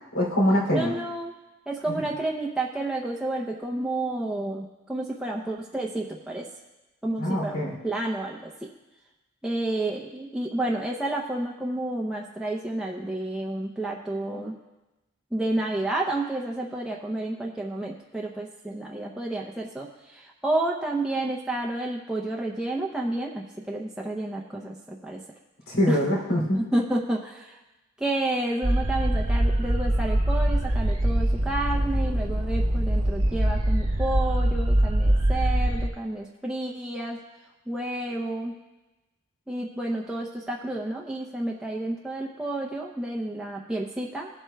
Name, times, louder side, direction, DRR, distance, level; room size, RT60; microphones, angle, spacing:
voice 1, 0.1-0.9 1.9-2.0 7.2-7.8 25.7-26.6, equal, 80° left, -2 dB, 2.9 m, -24 dB
voice 2, 0.7-1.3 1.7-6.5 7.0-8.5 9.4-14.6 15.3-25.2 25.9-26.0 26.5-27.6 28.0-37.2 37.7-38.6 39.5-44.3, right 1 dB, 5° right, -3 dB, 0.6 m, -30 dB
sound 1, 28.6-35.9, right 1 dB, 90° right, 1.1 m, -23 dB
19.0 x 7.9 x 2.3 m, 1.1 s
head